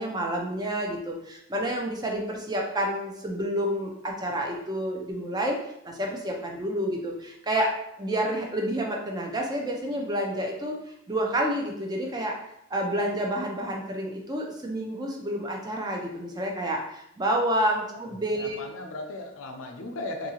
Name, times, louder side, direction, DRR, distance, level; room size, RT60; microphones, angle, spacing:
voice 1, 0.0-5.6 5.8-7.7 8.0-12.4 12.7-18.6, right 1 dB, 20° right, 0 dB, 0.4 m, -29 dB
voice 2, 18.3-20.3, left 2 dB, 85° left, 3 dB, 0.5 m, -36 dB
2.7 x 2.6 x 2.8 m, 0.78 s
head